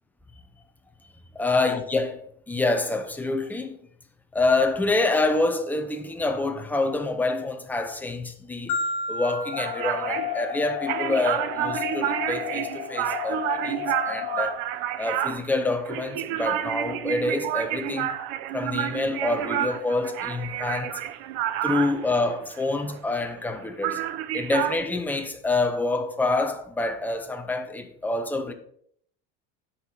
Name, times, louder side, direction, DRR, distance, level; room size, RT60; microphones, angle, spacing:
voice 1, 1.3-3.8 4.3-8.8 9.1-14.6 15.0-18.2 18.5-21.0 21.6-24.0 24.3-28.5, left 2 dB, 5° left, 0.6 m, -27 dB
Marimba xylophone, 8.7-10.9, left 1 dB, 60° left, 1.4 m, -32 dB
sound 1, 9.5-14.5, left 13 dB, 40° left, 1.3 m, -33 dB
sound 2, 9.6-23.6 23.8-24.8, right 12 dB, 70° right, 0.7 m, -30 dB
8.2 x 5.6 x 4.5 m
supercardioid pair, 150°, 31 cm